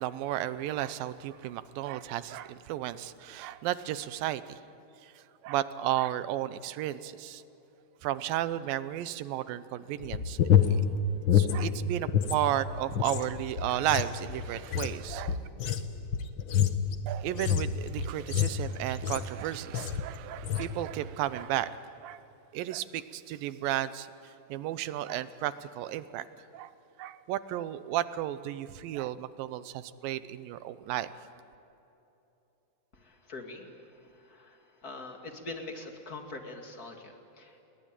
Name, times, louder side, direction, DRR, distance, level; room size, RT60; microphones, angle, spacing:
voice 1, 0.0-4.6 5.0-7.4 8.0-10.4 10.7-10.8 11.3-15.5 17.0-21.8 22.0-22.2 22.5-26.7 27.0-31.1, right 13 dB, 85° right, 14 dB, 2.6 m, -33 dB
sound 1, 10.0-12.4 12.7-19.4 19.7-20.1 20.4-20.7, left 8 dB, 80° left, 1.1 m, -28 dB
voice 2, 32.9-37.6, left 2 dB, 30° left, 3 dB, 2.3 m, -44 dB
29.0 x 21.0 x 9.0 m, 2.9 s
omnidirectional pair, 4.0 m